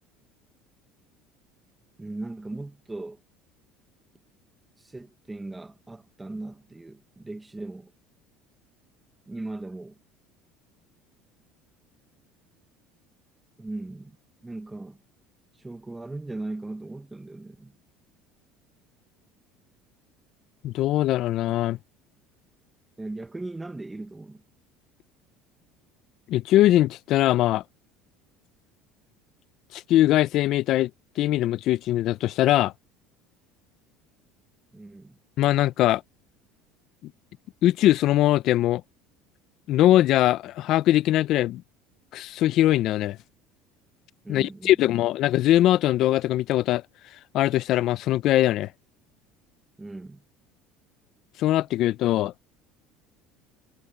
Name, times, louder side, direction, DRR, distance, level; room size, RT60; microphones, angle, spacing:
voice 1, 2.0-3.2 4.8-7.9 9.3-10.0 13.6-14.2 14.4-15.0 15.6-17.7 23.0-24.4 34.7-35.2 44.2-44.9 49.8-50.2, right 2 dB, 10° right, 1.3 m, -38 dB
voice 2, 20.6-21.8 26.3-27.6 29.7-30.9 31.2-32.7 35.4-36.0 37.6-38.8 39.7-41.6 42.1-43.2 44.3-46.8 47.3-48.7 51.4-52.3, left 14 dB, 55° left, 0.6 m, -21 dB
supercardioid pair, 125°, 0 cm